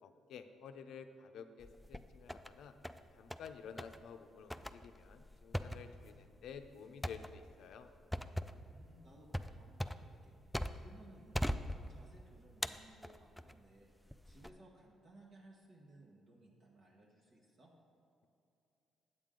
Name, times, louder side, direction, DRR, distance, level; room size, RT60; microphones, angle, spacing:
voice 1, 0.0-2.7 3.1-7.9, left 6 dB, 75° left, 8 dB, 0.5 m, -52 dB
sound 1, 1.6-2.5 2.8-3.5 3.8-4.0 4.5-11.0 11.3-12.2 12.6-13.6 14.1-14.5, equal, 5° left, 0.3 m, -41 dB
voice 2, 8.4-17.7, right 1 dB, 55° right, -3 dB, 1.4 m, -61 dB
8.8 x 8.1 x 3.8 m, 2.8 s
cardioid pair, 90°, 0 cm